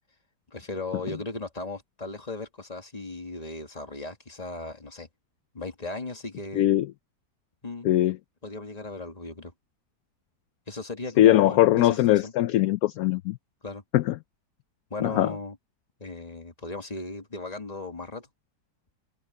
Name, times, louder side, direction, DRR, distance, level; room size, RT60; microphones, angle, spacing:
voice 1, 0.5-5.1 5.5-6.7 7.6-7.9 8.4-9.5 10.7-12.3 13.6-13.8 14.9-15.6 16.0-18.3, left 3 dB, 25° left, 2.2 m, -36 dB
voice 2, 6.5-6.9 7.8-8.2 11.2-13.4 13.9-14.1 15.0-15.3, left 14 dB, 70° left, 1.0 m, -21 dB
omnidirectional pair, 1.8 m